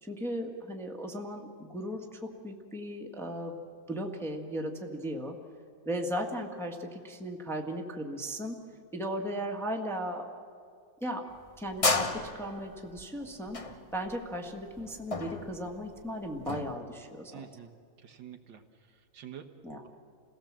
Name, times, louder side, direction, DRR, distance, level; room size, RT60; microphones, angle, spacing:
voice 1, 0.0-3.6 3.9-5.4 5.8-8.6 8.9-10.3 11.0-11.3 11.6-13.6 13.9-17.5 19.6-19.8, equal, ahead, 2 dB, 1.4 m, -36 dB
sound 1, 11.3-16.7, left 3 dB, 25° left, 0.7 m, -33 dB
voice 2, 17.3-17.7 18.0-18.6 18.9-19.5, right 9 dB, 70° right, 6 dB, 1.9 m, -47 dB
28.5 x 17.5 x 7.4 m, 2.2 s
omnidirectional pair, 2.1 m